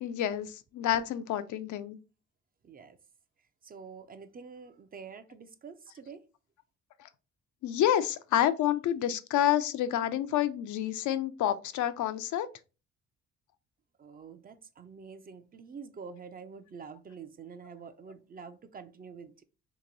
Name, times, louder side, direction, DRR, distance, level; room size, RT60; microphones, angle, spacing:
voice 1, 0.0-2.0 7.0-7.1 7.6-12.5, left 11 dB, 75° left, 0.5 m, -28 dB
voice 2, 2.6-3.0 3.6-6.2 14.0-19.4, right 5 dB, 30° right, 0.4 m, -47 dB
2.9 x 2.6 x 3.8 m
cardioid pair, 90°, 30 cm